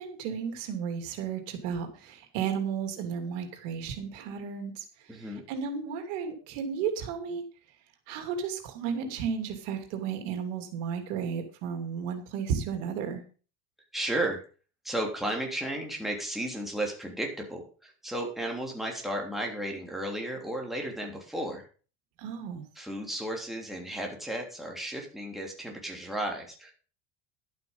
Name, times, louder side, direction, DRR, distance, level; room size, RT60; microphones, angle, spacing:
voice 1, 0.0-5.2 5.5-7.4 8.1-13.2 22.2-22.7, right 7 dB, 90° right, 6 dB, 2.8 m, -33 dB
voice 2, 5.1-5.4 13.9-14.4 14.8-21.7 22.7-26.7, right 1 dB, ahead, 0 dB, 3.2 m, -34 dB
11.5 x 8.3 x 5.5 m, 0.38 s
cardioid pair, 140°, 36 cm